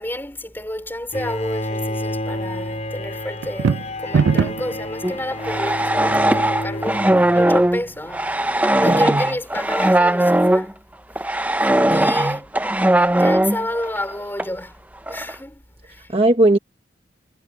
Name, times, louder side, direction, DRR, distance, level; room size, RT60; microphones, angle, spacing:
voice 1, 0.0-10.8 11.9-12.5 13.1-14.8 15.1-16.1, left 1 dB, 10° left, 4.9 m, -30 dB
Bowed string instrument, 1.1-7.9, left 1 dB, 35° left, 4.2 m, -30 dB
sound 1, 3.4-4.8, right 5 dB, 75° right, 0.4 m, -19 dB
sound 2, 5.0-10.7 11.1-14.1 14.4-14.5 15.1-15.3, right 1 dB, 10° right, 0.7 m, -19 dB
voice 2, 8.8-9.2 11.9-12.4 16.1-16.6, right 2 dB, 30° right, 1.2 m, -19 dB
head